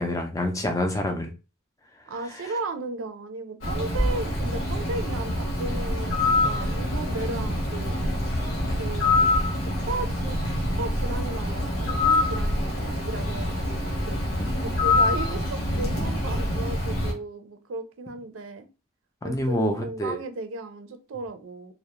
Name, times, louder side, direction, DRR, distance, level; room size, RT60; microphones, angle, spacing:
voice 1, 0.0-1.3 14.4-14.5 19.2-20.2, left 1 dB, 15° left, 0.3 m, -27 dB
voice 2, 2.1-7.9 8.8-9.1 9.8-10.4 10.8-14.2 14.6-18.7 19.2-21.7, right 3 dB, 90° right, 0.5 m, -35 dB
Bird, 3.6-17.1, left 2 dB, 80° left, 0.7 m, -25 dB
2.2 x 2.0 x 2.8 m
head